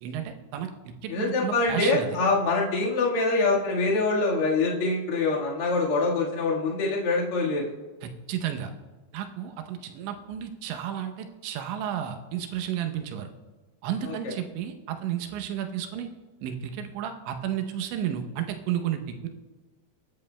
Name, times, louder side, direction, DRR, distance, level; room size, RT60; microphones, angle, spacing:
voice 1, 0.0-2.1 8.0-8.7 9.1-13.3 13.8-16.1 16.4-19.3, right 10 dB, 80° right, 5 dB, 3.1 m, -32 dB
voice 2, 1.1-7.7 14.0-14.3, left 3 dB, 70° left, -3 dB, 1.3 m, -25 dB
22.5 x 9.5 x 2.2 m, 1.3 s
omnidirectional pair, 5.3 m